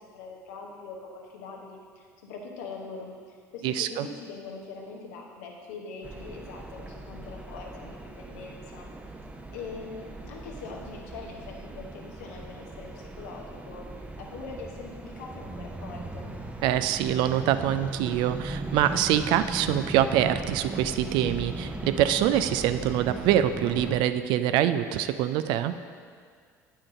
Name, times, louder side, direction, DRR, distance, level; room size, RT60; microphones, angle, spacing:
voice 1, 0.1-1.8 2.2-3.1 3.5-8.9 9.5-12.9 13.2-13.8 14.2-16.3, left 4 dB, 70° left, 0 dB, 1.1 m, -42 dB
voice 2, 3.6-4.1 16.6-25.7, right 11 dB, 60° right, 11 dB, 0.4 m, -25 dB
sound 1, 6.0-24.0, right 2 dB, 15° right, 0.7 m, -38 dB
8.7 x 4.4 x 4.8 m, 2.1 s
hypercardioid pair, 65°, 9 cm